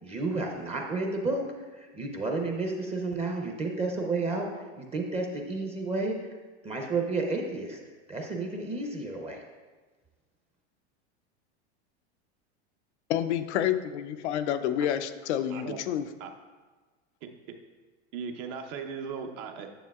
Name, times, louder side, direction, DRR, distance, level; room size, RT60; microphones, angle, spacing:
voice 1, 0.0-1.4 1.7-4.5 4.8-6.1 6.6-7.8 8.1-9.4, right 3 dB, 20° right, 0.7 m, -31 dB
voice 2, 13.1-16.1, left 10 dB, 85° left, 0.5 m, -29 dB
voice 3, 18.1-19.7, right 6 dB, 55° right, 0.8 m, -37 dB
9.1 x 6.9 x 2.3 m
supercardioid pair, 130°, 33 cm